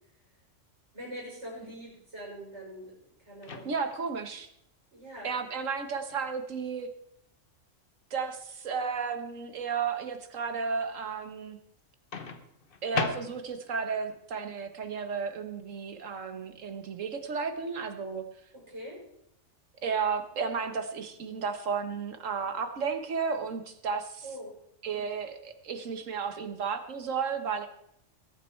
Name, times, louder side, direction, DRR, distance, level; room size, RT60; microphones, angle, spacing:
voice 1, 0.9-3.7 4.9-5.3 18.5-19.0 24.2-24.6 24.9-25.0, equal, 60° right, -4 dB, 6.7 m, -43 dB
Microwave oven, 3.4-4.1 6.1-6.3 12.1-13.7, left 4 dB, 45° left, 1.3 m, -36 dB
voice 2, 3.6-4.5 5.2-6.9 8.1-11.6 12.8-18.3 19.8-24.2 24.8-27.7, right 5 dB, 80° right, 7 dB, 1.7 m, -33 dB
20.5 x 9.5 x 4.5 m, 0.75 s
omnidirectional pair, 1.3 m